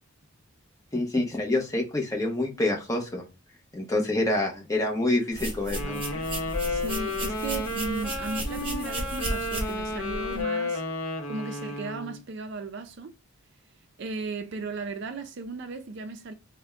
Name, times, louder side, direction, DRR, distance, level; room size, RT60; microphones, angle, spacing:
voice 1, 0.9-3.2 3.7-6.0, left 2 dB, 15° left, 0.8 m, -27 dB
sound 1, 5.3-10.4, right 1 dB, 25° right, 1.0 m, -34 dB
Wind instrument woodwind instrument, 5.7-12.2, left 2 dB, 70° left, 0.8 m, -32 dB
voice 2, 6.7-10.8 11.3-13.1 14.0-16.3, right 3 dB, 55° right, 0.4 m, -36 dB
3.4 x 2.1 x 3.5 m
head